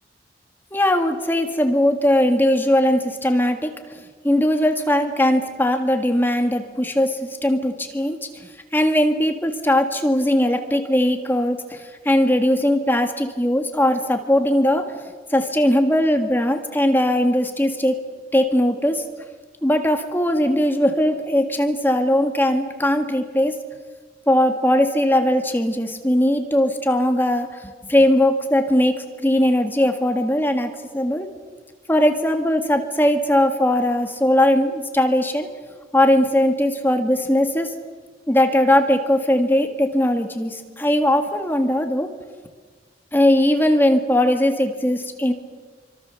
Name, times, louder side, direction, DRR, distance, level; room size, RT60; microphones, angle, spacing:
voice 1, 0.7-3.7 4.2-8.2 8.7-14.9 15.3-18.0 18.3-19.0 19.6-23.5 24.3-27.6 27.9-31.3 31.9-35.5 35.9-37.7 38.3-42.1 43.1-45.3, left 1 dB, 10° left, 5 dB, 1.8 m, -19 dB
27.0 x 25.0 x 7.0 m, 1.5 s
head